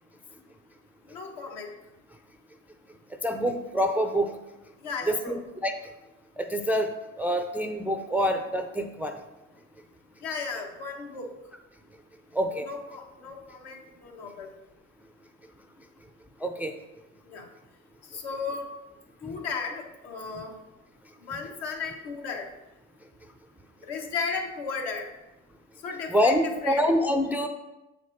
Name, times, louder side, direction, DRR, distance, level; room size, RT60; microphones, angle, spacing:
voice 1, 1.1-1.7 4.8-5.4 10.2-11.3 12.6-14.5 17.3-17.5 18.1-18.7 19.2-20.5 21.2-22.5 23.8-25.1 25.8-26.8, left 5 dB, 65° left, 2 dB, 1.4 m, -35 dB
voice 2, 3.2-4.4 5.1-5.7 6.4-9.2 12.3-12.7 16.4-16.7 26.1-27.5, equal, 5° right, 5 dB, 0.4 m, -26 dB
7.2 x 5.2 x 4.0 m, 1.0 s
hypercardioid pair, 85°, 38 cm